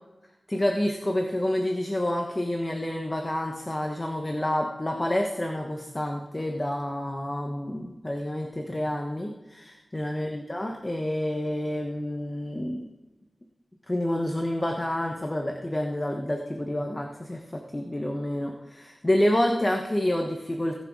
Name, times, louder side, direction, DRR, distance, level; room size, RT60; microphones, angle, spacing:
voice 1, 0.5-12.8 13.9-20.7, left 1 dB, 25° left, 2 dB, 1.1 m, -28 dB
18.5 x 6.3 x 4.7 m, 1.1 s
wide cardioid pair, 75°, 0 cm